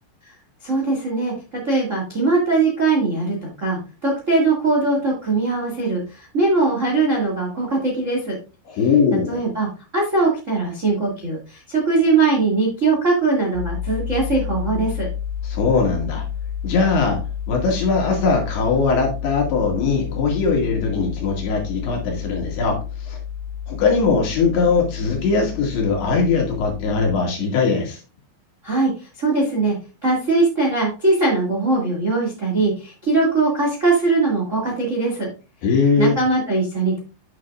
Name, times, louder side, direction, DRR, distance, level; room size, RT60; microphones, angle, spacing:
voice 1, 0.6-8.4 9.3-15.1 28.6-29.7 30.0-35.3 36.0-37.0, right 3 dB, 90° right, -2 dB, 0.6 m, -21 dB
voice 2, 8.7-9.4 15.4-16.2 16.6-17.2 17.5-23.2 23.7-28.0 35.6-36.2, left 4 dB, 60° left, 0 dB, 3.8 m, -20 dB
sound 1, 13.5-27.2, left 8 dB, 80° left, 0.6 m, -30 dB
11.0 x 6.6 x 2.4 m, 0.32 s
omnidirectional pair, 5.6 m